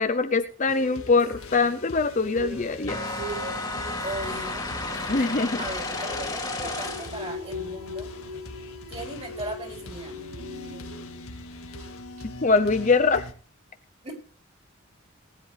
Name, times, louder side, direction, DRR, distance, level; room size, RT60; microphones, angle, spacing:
voice 1, 0.0-3.0 5.1-5.6 12.4-13.3, left 4 dB, 35° left, 8 dB, 0.7 m, -23 dB
sound 1, 0.7-13.3, left 2 dB, 80° left, 1.9 m, -42 dB
sound 2, 2.2-11.3 11.6-11.9 12.2-12.3, left 1 dB, 90° right, 2.0 m, -41 dB
sound 3, 2.9-7.3, left 2 dB, 15° left, 2.3 m, -32 dB
voice 2, 4.0-4.7 5.6-8.1 8.9-10.2 14.0-14.1, right 1 dB, 30° right, 0 dB, 4.6 m, -37 dB
19.5 x 10.5 x 3.4 m, 0.40 s
head